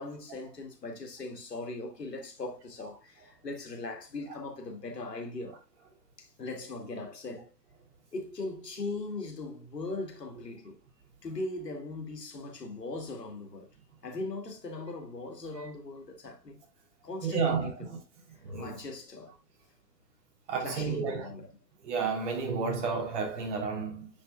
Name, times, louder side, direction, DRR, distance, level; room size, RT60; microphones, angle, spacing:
voice 1, 0.0-5.6 6.2-7.5 8.1-10.8 11.2-13.7 14.0-16.6 17.0-18.0 18.6-19.3 20.6-21.5, left 2 dB, 75° left, 2.4 m, -39 dB
voice 2, 17.2-17.7 18.4-18.7 20.5-21.3 21.8-24.1, right 5 dB, 45° right, 3.3 m, -31 dB
10.0 x 5.3 x 2.3 m
figure-of-eight pair, 110°, 49 cm